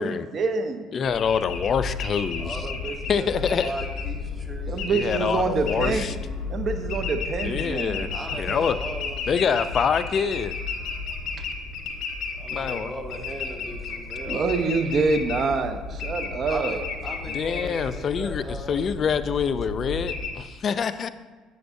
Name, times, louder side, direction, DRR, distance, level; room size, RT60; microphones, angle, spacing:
voice 1, 0.0-0.9 4.7-6.1 6.5-8.1 14.3-16.8, right 4 dB, 45° right, 7 dB, 0.6 m, -26 dB
voice 2, 0.9-2.6 3.1-3.7 4.9-6.2 7.4-8.1 8.4-8.8 9.3-10.6 12.5-12.9 16.2-16.4 17.3-21.1, left 6 dB, 40° left, 13 dB, 0.3 m, -26 dB
sound 1, 1.0-20.3, left 4 dB, 60° left, 0.8 m, -33 dB
voice 3, 2.4-5.3 5.8-6.4 8.1-9.4 12.4-14.7 16.5-18.8, right 1 dB, 5° right, 1 dB, 1.1 m, -38 dB
7.9 x 7.0 x 2.6 m, 1.4 s
cardioid pair, 105°, 0 cm